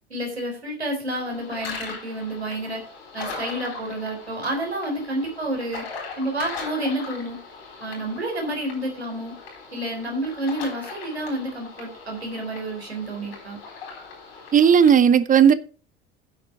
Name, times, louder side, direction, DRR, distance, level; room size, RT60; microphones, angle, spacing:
voice 1, 0.1-2.8 3.1-5.9 6.2-7.4 7.8-9.4 9.7-13.6, right 1 dB, 85° right, 3.7 m, -29 dB
sound 1, 1.1-14.9, left 4 dB, 70° left, 4.1 m, -39 dB
voice 2, 14.5-15.5, right 8 dB, 25° right, 0.8 m, -14 dB
11.0 x 6.6 x 5.0 m
figure-of-eight pair, 65°, 31 cm